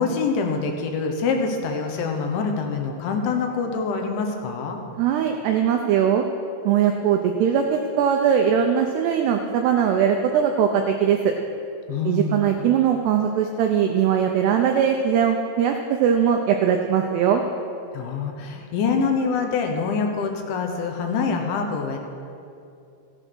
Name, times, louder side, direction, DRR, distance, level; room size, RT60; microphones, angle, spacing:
voice 1, 0.0-4.8 11.9-12.6 17.9-22.0, left 5 dB, 75° left, 3 dB, 3.3 m, -25 dB
voice 2, 5.0-6.2 6.6-11.3 12.1-17.4, right 8 dB, 85° right, 3 dB, 2.4 m, -20 dB
15.5 x 8.8 x 6.2 m, 2.6 s
omnidirectional pair, 5.6 m